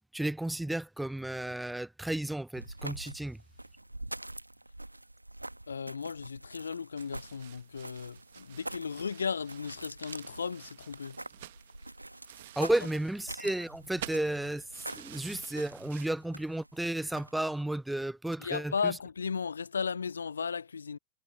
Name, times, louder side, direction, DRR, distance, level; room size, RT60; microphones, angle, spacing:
voice 1, 0.1-3.4 12.6-14.6 15.0-18.9, right 1 dB, 5° right, 0.7 m, -33 dB
sound 1, 2.5-17.6, right 1 dB, 85° right, 1.5 m, -46 dB
voice 2, 5.7-11.2 18.4-21.0, left 6 dB, 75° left, 0.5 m, -35 dB
sound 2, 7.0-16.1, right 15 dB, 55° right, 1.1 m, -50 dB
figure-of-eight pair, 90°, 0 cm